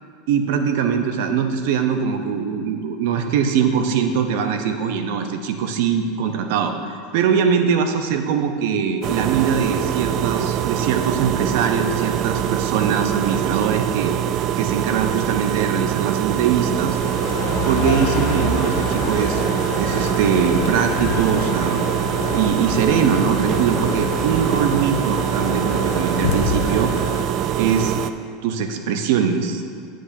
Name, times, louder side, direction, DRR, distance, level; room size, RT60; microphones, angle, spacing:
voice 1, 0.3-14.2 14.6-17.0 17.6-19.4 19.7-21.9 22.3-26.9 27.5-27.9 28.4-29.6, right 7 dB, 70° right, 6 dB, 0.7 m, -22 dB
sound 1, 9.0-28.1, right 11 dB, 45° right, 0.3 m, -23 dB
sound 2, 16.5-27.2, left 4 dB, 65° left, 0.9 m, -28 dB
10.0 x 7.6 x 2.7 m, 2.2 s
supercardioid pair, 125°, 0 cm